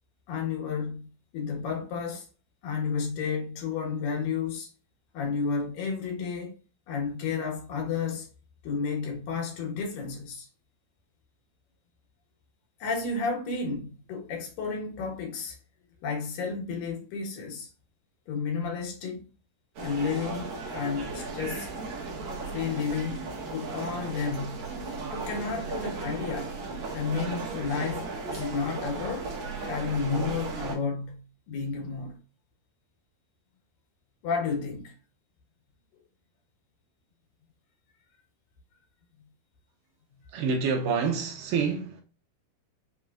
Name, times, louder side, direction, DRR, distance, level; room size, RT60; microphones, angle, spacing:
voice 1, 0.3-1.1 1.3-2.3 2.6-4.7 5.1-6.5 6.9-8.3 8.6-10.5 12.8-15.6 16.0-17.7 18.3-19.2 19.8-21.7 22.5-23.2 23.5-24.7 25.1-26.6 26.9-29.3 29.6-32.2 34.2-34.9, left 5 dB, 80° left, 3.0 m, -32 dB
sound 1, 19.8-30.8, right 3 dB, 60° right, 2.3 m, -36 dB
voice 2, 40.3-42.0, right 5 dB, 80° right, 2.2 m, -27 dB
6.5 x 3.1 x 2.3 m
omnidirectional pair, 3.9 m